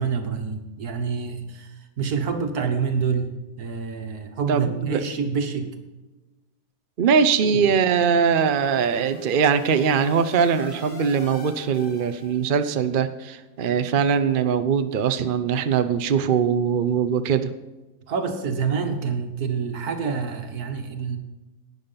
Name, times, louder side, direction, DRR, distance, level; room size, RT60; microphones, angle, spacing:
voice 1, 0.0-1.7 2.0-3.3 3.6-5.7 7.4-7.6 18.1-21.2, right 5 dB, 70° right, 6 dB, 1.9 m, -27 dB
voice 2, 4.5-5.0 7.0-17.5, right 6 dB, 50° right, 10 dB, 0.6 m, -21 dB
sound 1, 7.7-12.7, left 2 dB, 40° left, 2.0 m, -45 dB
12.0 x 9.4 x 5.6 m, 1.1 s
omnidirectional pair, 1.7 m